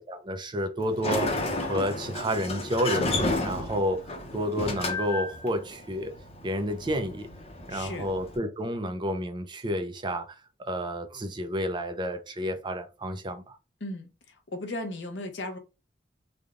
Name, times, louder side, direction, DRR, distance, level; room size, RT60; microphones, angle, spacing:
voice 1, 0.0-3.1 3.4-6.1 6.4-7.3 7.7-13.6, equal, 25° right, 0.5 m, -30 dB
Sliding door, 0.8-8.4, left 2 dB, 35° left, 0.8 m, -32 dB
voice 2, 7.7-8.1 13.8-14.1 14.5-15.6, left 1 dB, 75° left, 0.9 m, -35 dB
3.4 x 2.3 x 3.6 m
head